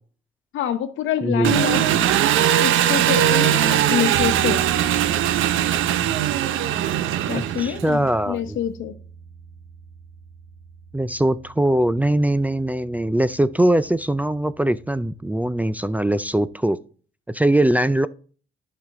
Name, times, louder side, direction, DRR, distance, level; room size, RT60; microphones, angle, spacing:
voice 1, 0.5-2.1 2.6-4.6 7.3-9.0, left 10 dB, 80° left, 1.0 m, -26 dB
voice 2, 1.2-1.5 7.3-8.6 10.9-16.8 17.3-18.1, right 1 dB, 10° right, 0.4 m, -21 dB
Engine, 1.4-7.9, right 11 dB, 80° right, 0.7 m, -20 dB
sound 1, 4.1-16.5, right 5 dB, 55° right, 2.6 m, -40 dB
10.5 x 5.8 x 3.5 m
cardioid pair, 90°, 20 cm